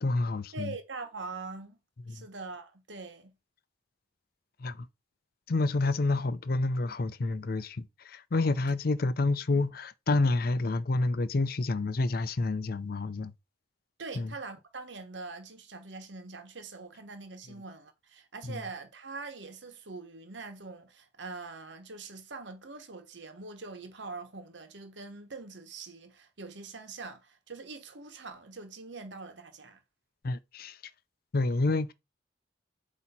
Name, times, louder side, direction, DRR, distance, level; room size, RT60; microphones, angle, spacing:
voice 1, 0.0-0.7 2.1-2.3 4.6-4.9 5.5-13.3 14.2-14.3 18.4-18.6 30.2-30.8 31.3-31.9, left 2 dB, 55° left, 0.5 m, -29 dB
voice 2, 0.5-1.8 2.1-3.3 14.0-29.8, right 3 dB, 80° right, 1.2 m, -43 dB
8.0 x 2.9 x 4.3 m
head